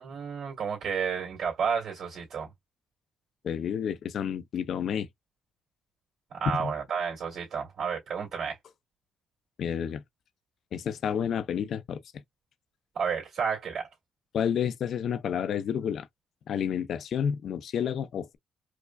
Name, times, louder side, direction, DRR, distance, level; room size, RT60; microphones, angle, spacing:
voice 1, 0.0-2.5 6.3-8.6 12.9-13.9, right 6 dB, 60° right, 1.9 m, -31 dB
voice 2, 3.4-5.1 6.6-6.7 9.6-10.0 10.7-12.0 14.3-16.1 16.5-18.4, left 8 dB, 65° left, 0.5 m, -30 dB
4.7 x 2.2 x 2.2 m
cardioid pair, 90°, 0 cm